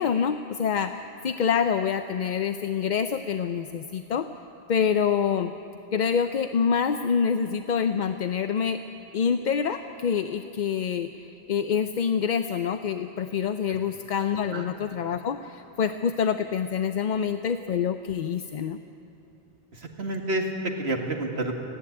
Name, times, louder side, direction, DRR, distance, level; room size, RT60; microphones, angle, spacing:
voice 1, 0.0-4.3 4.7-5.5 5.9-8.8 9.1-18.8, left 7 dB, 55° left, 9 dB, 0.6 m, -26 dB
voice 2, 19.7-21.5, right 1 dB, 85° right, 2 dB, 2.2 m, -29 dB
29.0 x 11.0 x 9.8 m, 2.9 s
omnidirectional pair, 1.0 m